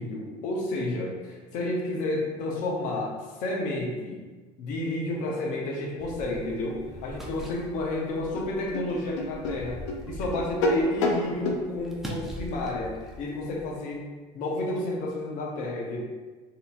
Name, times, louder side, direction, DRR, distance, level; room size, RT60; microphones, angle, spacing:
voice 1, 0.0-4.2 4.6-9.8 10.1-14.0 14.3-16.0, left 2 dB, 65° left, -2 dB, 1.0 m, -31 dB
sound 1, 6.0-13.8, equal, ahead, 0.6 m, -42 dB
sound 2, 7.8-7.9 8.3-11.6, left 1 dB, 85° left, 0.5 m, -28 dB
4.1 x 2.8 x 2.5 m, 1.3 s
supercardioid pair, 85°, 15 cm